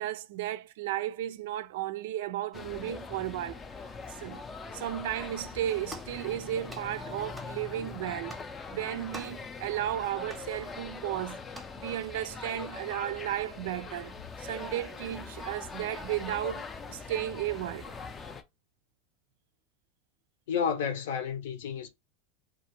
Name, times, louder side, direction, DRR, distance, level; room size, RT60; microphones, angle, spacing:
voice 1, 0.0-3.6 4.1-4.4 4.7-8.4 8.7-11.4 11.8-18.0, right 13 dB, 75° right, 0.3 m, -34 dB
sound 1, 2.5-18.4, left 4 dB, 20° left, 0.4 m, -42 dB
sound 2, 5.9-6.2 6.7-6.9 7.4-7.6 8.3-8.5 9.1-9.4 10.3-10.5 11.5-11.8, right 1 dB, 5° right, 0.7 m, -45 dB
voice 2, 20.5-21.9, left 7 dB, 75° left, 0.7 m, -31 dB
2.4 x 2.4 x 2.9 m
supercardioid pair, 135°, 0 cm